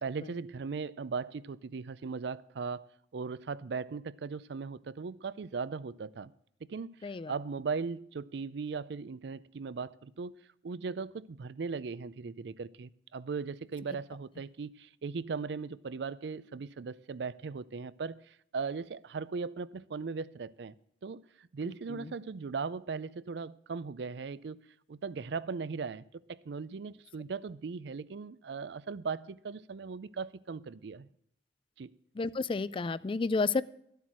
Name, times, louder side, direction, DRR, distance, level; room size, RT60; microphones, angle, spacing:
voice 1, 0.0-2.9 3.1-6.3 6.6-10.3 10.6-18.2 18.5-20.7 21.0-24.6 24.9-26.0 26.3-31.1 31.8-31.9, right 5 dB, 70° right, 0.5 m, -38 dB
voice 2, 32.2-33.6, left 4 dB, 30° left, 0.3 m, -30 dB
12.0 x 8.1 x 6.1 m
head